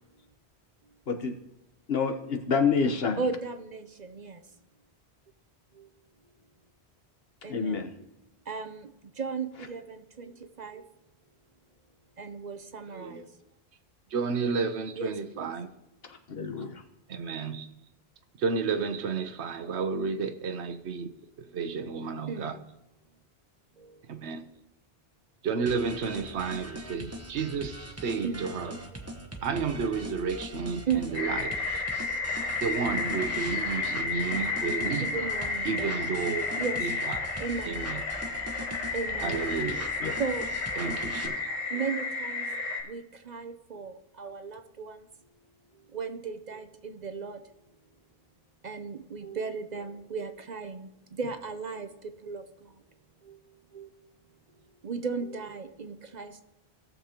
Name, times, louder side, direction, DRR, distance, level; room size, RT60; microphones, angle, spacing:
voice 1, 1.9-3.1 7.5-7.9 16.3-16.8 40.0-40.1, left 5 dB, 65° left, 1.2 m, -27 dB
voice 2, 3.2-4.4 7.4-7.9 8.5-8.9 9.2-10.8 12.2-13.2 15.0-15.5 22.3-22.5 28.2-28.5 30.9-31.2 33.7-33.9 35.0-35.9 36.6-36.8 37.4-37.8 38.9-39.4 39.7-39.9 40.2-40.5 41.7-42.4 42.9-45.0 45.9-47.4 48.6-50.9 51.2-51.9 52.2-52.4 53.3-53.4 53.7-53.9 54.8-56.4, right 5 dB, 45° right, 0.7 m, -35 dB
voice 3, 12.9-13.3 14.1-15.7 17.1-17.7 18.4-22.6 24.1-24.5 25.4-28.8 29.4-31.6 32.6-35.1 35.6-36.5 36.8-37.3 37.6-38.0 39.2-39.9 40.8-41.5, right 5 dB, 85° right, 1.1 m, -32 dB
sound 1, 25.7-41.3, right 1 dB, 15° right, 0.9 m, -41 dB
sound 2, 31.1-42.8, left 4 dB, 80° left, 2.3 m, -32 dB
18.0 x 6.9 x 2.9 m
omnidirectional pair, 1.1 m